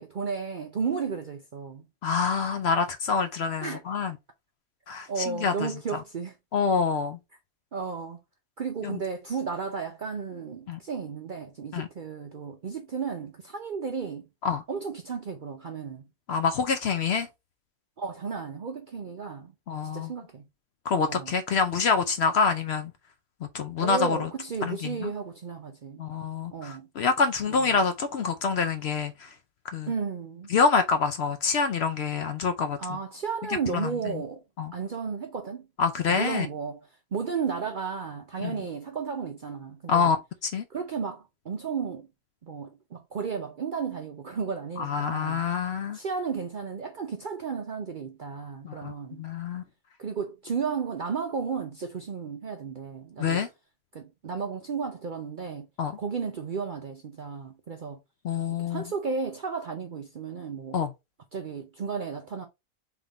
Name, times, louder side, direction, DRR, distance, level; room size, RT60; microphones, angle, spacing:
voice 1, 0.0-1.9 3.6-3.8 5.1-6.4 7.7-8.2 8.6-14.3 14.7-16.1 18.0-19.5 19.9-20.5 21.0-21.3 23.8-26.0 26.5-26.9 27.5-27.8 29.9-30.5 32.8-34.4 34.7-35.7 36.1-40.1 40.7-42.1 42.4-45.5 45.9-49.2 50.0-53.5 53.9-55.7 56.0-58.0 58.6-60.8 61.3-62.5, right 5 dB, 55° right, 0.5 m, -33 dB
voice 2, 2.0-4.1 4.9-5.7 6.5-7.2 8.8-9.0 10.7-10.8 11.7-11.9 14.4-14.6 16.3-17.3 19.7-20.1 20.9-22.9 23.5-24.3 24.6-25.1 26.0-29.3 29.7-29.9 30.5-32.8 33.7-33.9 34.6-34.7 35.8-36.5 38.4-38.5 39.9-40.6 44.8-46.0 48.6-48.9 49.2-49.6 53.2-53.5 55.8-56.0 58.2-58.8 60.7-60.9, left 5 dB, 60° left, 0.7 m, -26 dB
3.6 x 3.5 x 3.9 m
omnidirectional pair, 1.5 m